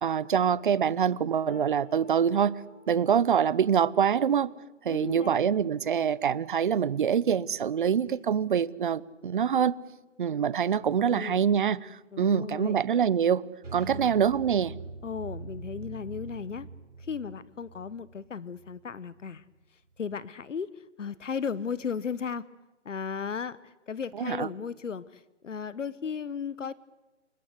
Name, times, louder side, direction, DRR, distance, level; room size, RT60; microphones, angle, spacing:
voice 1, 0.0-2.6 2.9-4.5 4.8-9.7 10.2-13.4 13.7-14.7 24.2-24.5, right 8 dB, 45° right, 0.9 m, -25 dB
sound 1, 1.5-7.6 8.2-8.4 8.7-9.5 10.4-10.5, right 1 dB, 25° left, 5.3 m, -55 dB
voice 2, 4.9-5.5 11.0-11.4 12.1-12.8 13.8-14.2 15.0-16.7 17.0-19.5 19.7-22.5 22.8-26.7, left 6 dB, 80° left, 1.1 m, -36 dB
sound 2, 13.6-19.3, right 3 dB, 80° right, 5.5 m, -43 dB
29.0 x 18.5 x 8.3 m
hypercardioid pair, 155°, 37 cm